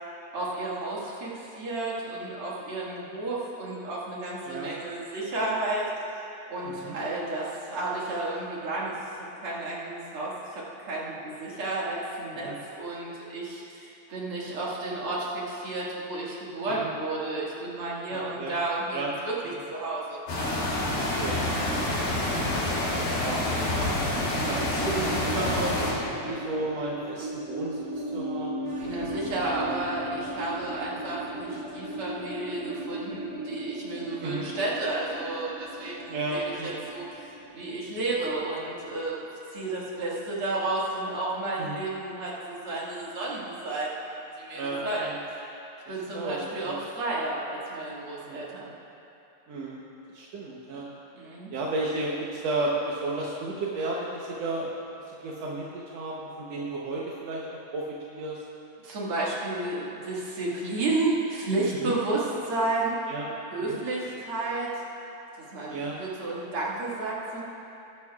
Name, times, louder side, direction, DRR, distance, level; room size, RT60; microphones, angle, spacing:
voice 1, 0.3-5.9 6.5-9.0 9.4-12.5 12.7-19.3 19.7-20.2 28.8-45.4 45.9-48.7 51.1-51.5 58.8-62.9 63.5-64.7 65.5-67.4, right 2 dB, 45° right, -6 dB, 2.5 m, -32 dB
voice 2, 6.6-7.0 12.3-12.5 16.8-16.9 18.1-18.5 18.9-19.1 19.4-19.6 20.9-22.2 22.7-24.0 24.5-27.8 28.1-28.7 34.2-34.4 36.1-36.8 41.6-41.8 44.5-45.2 46.1-46.8 48.2-48.5 49.5-49.8 50.1-50.9 51.5-54.7 55.1-57.5 57.7-58.4 61.8-62.0 63.1-63.3 63.7-63.8 65.7-66.0, right 2 dB, 70° right, -4 dB, 1.6 m, -33 dB
sound 1, 20.3-25.9, left 1 dB, 75° left, 4.5 m, -27 dB
sound 2, 24.4-39.1, right 1 dB, 25° right, 2.9 m, -37 dB
20.0 x 12.0 x 2.4 m, 2.9 s
omnidirectional pair, 4.0 m